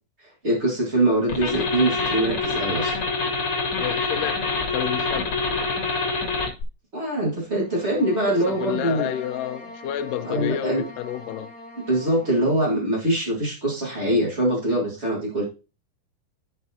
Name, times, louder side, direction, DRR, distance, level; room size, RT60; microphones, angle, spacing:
voice 1, 0.4-2.9 6.9-9.1 10.2-10.8 11.9-15.4, right 1 dB, 90° right, 0.6 m, -23 dB
sound 1, 1.3-6.6, left 3 dB, 55° left, 1.5 m, -26 dB
voice 2, 3.8-5.3 8.3-11.5, left 11 dB, 80° left, 2.0 m, -30 dB
sound 2, 7.6-12.5, left 1 dB, 15° left, 1.1 m, -42 dB
12.5 x 4.5 x 2.8 m
omnidirectional pair, 4.3 m